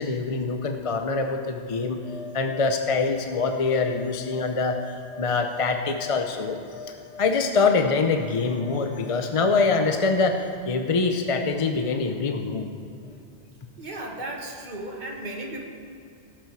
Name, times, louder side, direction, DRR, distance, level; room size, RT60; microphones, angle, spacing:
voice 1, 0.0-2.0 2.3-4.8 5.2-6.6 7.2-10.4 10.7-12.6, left 4 dB, 35° left, 5 dB, 0.6 m, -24 dB
sound 1, 2.0-10.6, left 4 dB, 75° left, 1.2 m, -41 dB
voice 2, 13.8-15.6, right 1 dB, 45° right, -1 dB, 1.6 m, -35 dB
17.5 x 7.7 x 4.7 m, 2.6 s
omnidirectional pair, 1.1 m